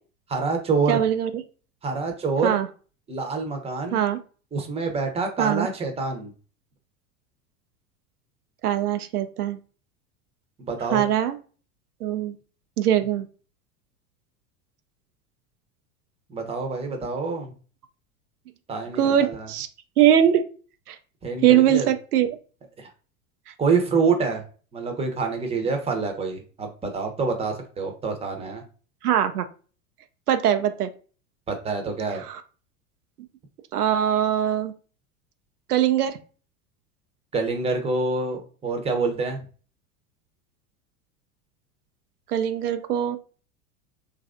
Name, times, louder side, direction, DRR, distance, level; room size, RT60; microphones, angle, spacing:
voice 1, 0.3-1.0 1.8-2.6 3.1-4.0 4.5-6.3 10.7-11.0 16.3-17.5 18.7-19.5 21.2-21.9 22.8-22.9 23.6-24.4 24.7-28.6 31.5-32.2 37.3-39.4, right 4 dB, 15° right, 4 dB, 0.7 m, -26 dB
voice 2, 0.9-1.4 2.4-2.7 3.9-4.2 5.4-5.7 8.6-9.6 10.9-11.4 12.0-12.3 12.8-13.3 19.0-19.7 20.0-20.4 20.9-21.0 21.4-22.3 23.5-23.6 29.0-29.4 30.3-30.9 32.2-32.4 33.7-34.7 35.7-36.2 42.3-43.2, right 10 dB, 85° right, 9 dB, 0.5 m, -21 dB
3.1 x 2.4 x 2.5 m, 0.37 s
hypercardioid pair, 90°, 44 cm